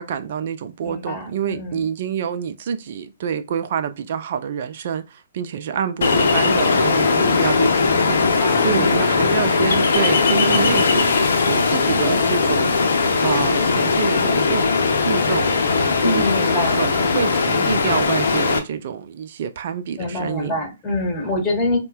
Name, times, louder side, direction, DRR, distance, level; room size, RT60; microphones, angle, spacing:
voice 1, 0.0-11.1 11.5-14.7 15.0-15.5 15.9-20.6, right 8 dB, 50° right, 0.4 m, -27 dB
voice 2, 0.8-1.8 8.1-9.0 16.0-16.8 20.0-21.8, left 2 dB, 15° left, 1.5 m, -25 dB
Ocean, 6.0-18.6, left 4 dB, 60° left, 0.6 m, -19 dB
4.2 x 2.2 x 2.3 m
figure-of-eight pair, 125°, 0 cm